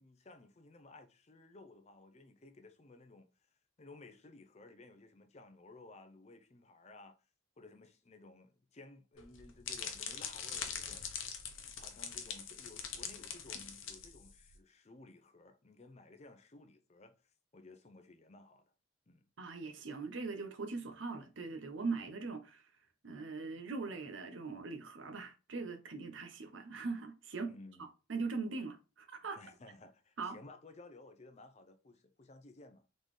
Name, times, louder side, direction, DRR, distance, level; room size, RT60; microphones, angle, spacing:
voice 1, 0.0-3.3 3.8-7.2 7.6-11.1 11.7-18.7 19.1-19.3 27.5-27.9 29.4-32.8, left 2 dB, 35° left, 0.5 m, -57 dB
sound 1, 9.2-14.5, left 7 dB, 80° left, 0.8 m, -43 dB
voice 2, 19.4-22.6 23.0-27.5 27.8-29.4 30.2-30.4, right 4 dB, 70° right, 0.8 m, -41 dB
3.9 x 3.8 x 3.2 m
head